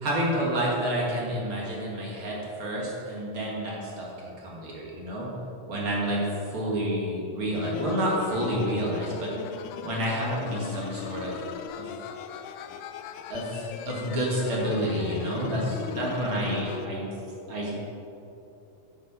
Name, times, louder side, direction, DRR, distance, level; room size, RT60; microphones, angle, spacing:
voice 1, 0.0-5.3 5.7-6.2 6.5-9.3 9.8-11.9 13.3-17.1 17.5-17.8, right 1 dB, 45° right, -4 dB, 2.3 m, -29 dB
sound 1, 7.5-16.9, left 8 dB, 85° left, 1.8 m, -38 dB
9.2 x 7.6 x 6.8 m, 2.9 s
omnidirectional pair, 4.1 m